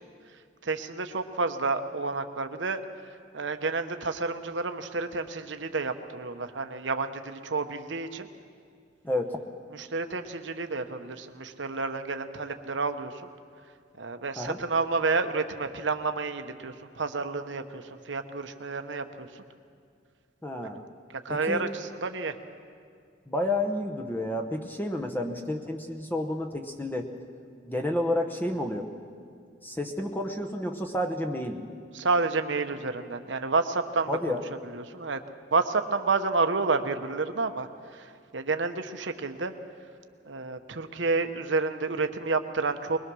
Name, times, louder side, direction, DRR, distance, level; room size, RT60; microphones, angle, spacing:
voice 1, 0.6-2.8 3.3-8.3 9.7-13.2 14.0-19.4 20.6-20.8 21.2-22.4 31.9-34.4 34.7-35.2 35.5-37.7 37.9-39.5 40.2-43.0, right 3 dB, 75° right, 7 dB, 1.0 m, -30 dB
voice 2, 9.0-9.4 14.4-14.6 20.4-20.8 21.3-21.6 23.3-27.1 27.6-28.9 29.6-31.6 34.1-34.4, left 1 dB, 10° left, 3 dB, 1.0 m, -30 dB
21.5 x 21.5 x 6.3 m, 2.2 s
head